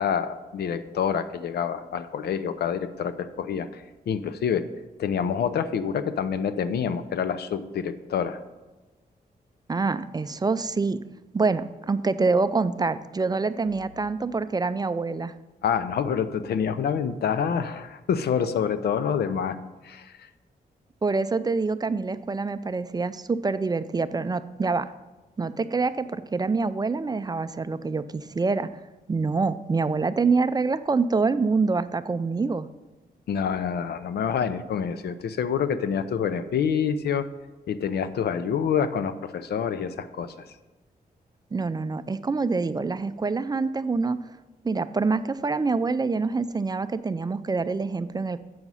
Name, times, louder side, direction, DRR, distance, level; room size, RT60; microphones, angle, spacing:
voice 1, 0.0-4.6 5.0-8.4 15.6-19.6 19.8-20.3 33.3-37.2 37.7-40.3, left 7 dB, 85° left, 12 dB, 0.6 m, -27 dB
voice 2, 9.7-11.0 11.3-15.3 21.0-24.9 25.4-28.7 29.1-32.7 41.5-44.2 44.6-48.4, right 4 dB, 25° right, 13 dB, 0.4 m, -26 dB
7.8 x 6.0 x 5.5 m, 1.2 s
cardioid pair, 85°, 16 cm